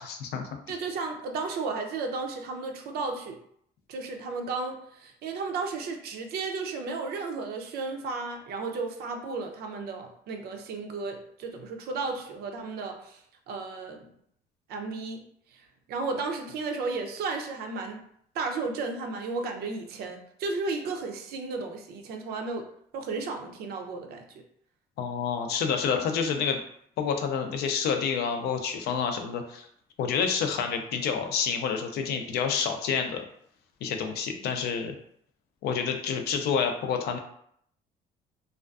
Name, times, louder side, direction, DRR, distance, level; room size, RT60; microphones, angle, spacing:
voice 1, 0.0-0.5 25.0-26.6 27.0-29.7 30.0-33.2 33.8-35.0 35.6-37.2, left 6 dB, 70° left, 5 dB, 0.4 m, -28 dB
voice 2, 0.7-3.4 3.9-13.2 13.5-14.0 14.7-15.2 15.9-18.0 18.3-22.6 22.9-24.2, right 4 dB, 70° right, 4 dB, 0.5 m, -33 dB
2.5 x 2.3 x 2.3 m, 0.68 s
cardioid pair, 110°, 17 cm